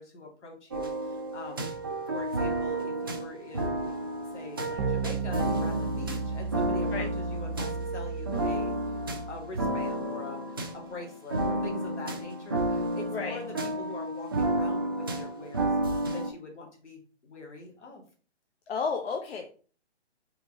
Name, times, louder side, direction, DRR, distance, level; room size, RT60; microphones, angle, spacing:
voice 1, 0.0-1.7 2.1-3.9 4.3-9.0 9.3-15.7 16.1-18.0, left 3 dB, 80° left, 0 dB, 2.2 m, -44 dB
sound 1, 0.7-16.3, right 1 dB, 20° right, 0.4 m, -31 dB
sound 2, 4.8-9.6, right 4 dB, 55° right, 0.8 m, -34 dB
voice 2, 18.7-19.5, left 5 dB, 60° left, 3 dB, 0.8 m, -32 dB
4.1 x 3.5 x 3.8 m, 0.40 s
hypercardioid pair, 150°, 34 cm